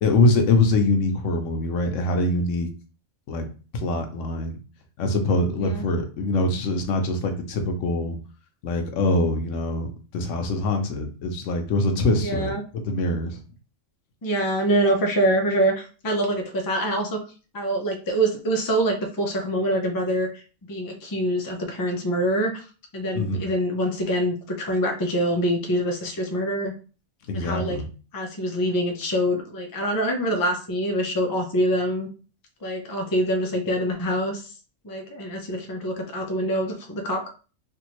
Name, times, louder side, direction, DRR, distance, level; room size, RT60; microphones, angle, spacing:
voice 1, 0.0-2.7 3.3-3.4 3.7-4.6 5.0-8.2 8.6-12.5 12.8-13.4 23.1-23.4 27.3-27.9, left 2 dB, 85° left, 5 dB, 1.0 m, -23 dB
voice 2, 12.2-12.6 14.2-17.2 17.5-20.4 20.7-22.7 22.9-26.7 27.3-27.8 28.1-32.1 32.6-34.5 34.8-37.3, right 1 dB, 30° left, 3 dB, 0.4 m, -25 dB
3.5 x 2.5 x 3.0 m, 0.36 s
omnidirectional pair, 1.3 m